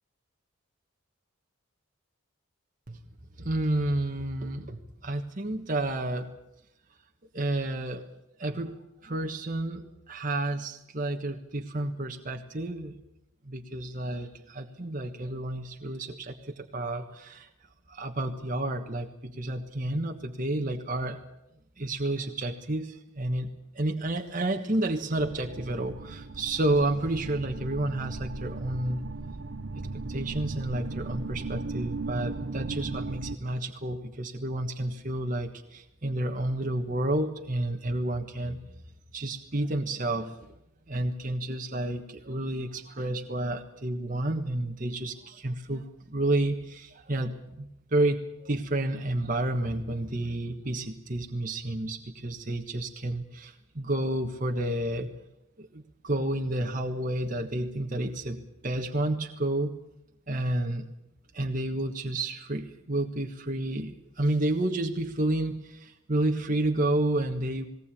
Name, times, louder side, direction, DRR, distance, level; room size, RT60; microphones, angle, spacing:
voice 1, 3.4-6.3 7.3-8.1 8.4-12.9 13.4-17.5 17.9-21.2 21.8-23.5 23.7-29.0 30.1-38.6 39.1-40.5 40.9-55.1 55.6-59.7 60.3-60.9 61.3-67.7, right 1 dB, 40° right, 3 dB, 1.4 m, -30 dB
sound 1, 25.2-33.4, right 3 dB, 60° right, 0.8 m, -37 dB
20.5 x 18.5 x 8.7 m, 0.84 s
head